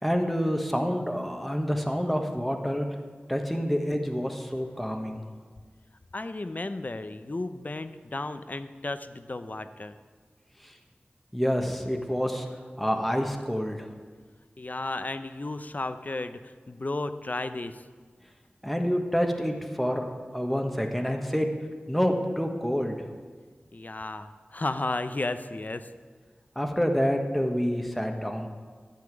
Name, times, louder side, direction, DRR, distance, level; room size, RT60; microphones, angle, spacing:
voice 1, 0.0-2.8 3.3-5.2 11.3-12.4 12.8-13.9 18.6-20.1 20.3-21.5 21.9-23.0 26.5-28.5, equal, ahead, 3 dB, 1.4 m, -27 dB
voice 2, 6.1-9.9 14.6-17.8 23.7-25.9, left 2 dB, 45° left, 10 dB, 0.7 m, -33 dB
13.0 x 5.8 x 9.1 m, 1.5 s
wide cardioid pair, 60°, 4 cm